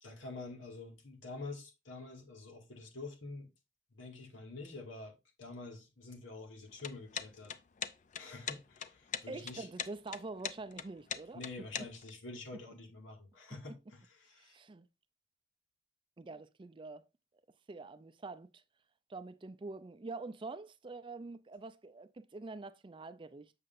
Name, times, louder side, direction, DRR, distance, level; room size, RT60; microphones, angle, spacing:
voice 1, 0.0-3.5 3.9-7.5 8.2-9.7 11.3-14.6, left 3 dB, 90° left, 2.1 m, -47 dB
sound 1, 6.7-12.1, left 8 dB, 40° left, 0.4 m, -41 dB
voice 2, 9.3-11.4 14.3-14.9 16.2-17.0 17.7-18.6 19.1-23.5, right 3 dB, 25° right, 0.4 m, -45 dB
7.5 x 6.6 x 2.6 m
head